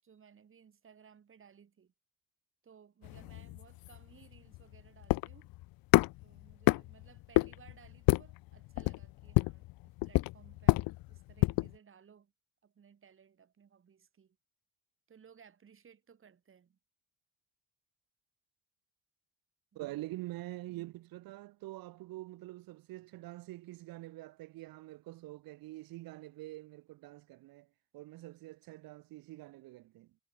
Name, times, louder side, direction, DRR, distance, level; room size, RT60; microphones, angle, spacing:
voice 1, 0.0-1.9 2.6-5.5 6.2-12.3 12.6-14.4 15.1-16.8, right 7 dB, 35° right, 6.7 m, -61 dB
sound 1, 3.0-11.7, left 20 dB, 85° left, 0.7 m, -30 dB
voice 2, 19.7-30.2, right 18 dB, 85° right, 1.5 m, -46 dB
cardioid pair, 135°, 34 cm